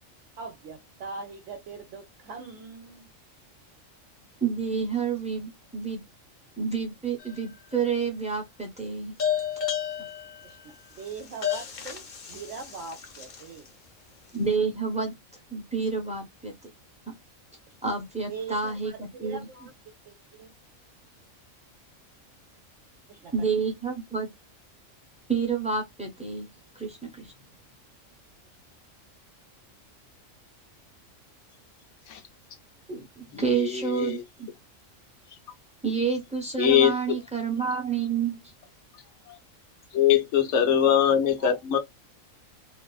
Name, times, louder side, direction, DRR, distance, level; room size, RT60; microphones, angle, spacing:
voice 1, 0.4-3.1 10.4-13.7 18.3-20.5 23.1-23.5, right 4 dB, 70° right, 1.0 m, -41 dB
voice 2, 4.4-6.0 6.6-9.2 14.3-15.1 15.5-16.5 17.1-17.2 17.8-19.5 23.3-24.3 25.3-26.5 26.8-27.3 32.9-34.5 35.8-38.4 41.4-41.5, right 5 dB, 5° right, 0.6 m, -29 dB
sound 1, 7.2-7.8 9.2-13.7, left 9 dB, 50° left, 0.6 m, -32 dB
voice 3, 33.3-34.2 36.6-37.0 39.3-39.4 39.9-41.8, left 9 dB, 70° left, 0.9 m, -22 dB
2.6 x 2.4 x 2.3 m
omnidirectional pair, 1.4 m